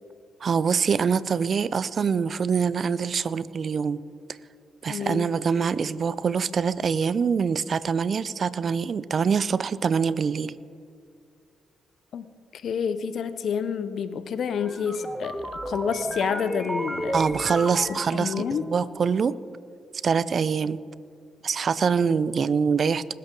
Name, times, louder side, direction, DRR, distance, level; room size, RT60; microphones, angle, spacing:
voice 1, 0.4-4.0 4.8-10.5 17.1-19.4 20.0-20.8 21.4-23.1, right 6 dB, 50° right, 19 dB, 0.4 m, -24 dB
voice 2, 4.9-5.3 12.1-17.2 17.9-18.7, left 7 dB, 60° left, 12 dB, 0.7 m, -29 dB
sound 1, 14.6-18.8, right 1 dB, 15° right, 1.3 m, -33 dB
19.5 x 11.0 x 3.8 m, 2.3 s
hypercardioid pair, 45°, 0 cm